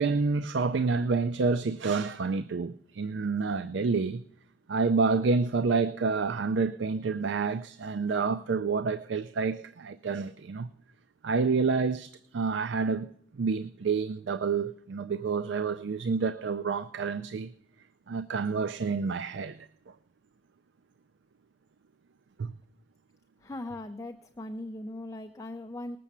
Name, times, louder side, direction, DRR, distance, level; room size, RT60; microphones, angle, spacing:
voice 1, 0.0-4.2 4.7-10.7 11.2-17.5 18.1-19.7 22.4-22.5, right 4 dB, 80° right, 0.4 m, -28 dB
voice 2, 23.4-26.0, left 1 dB, 20° left, 0.5 m, -39 dB
19.0 x 6.9 x 7.2 m
head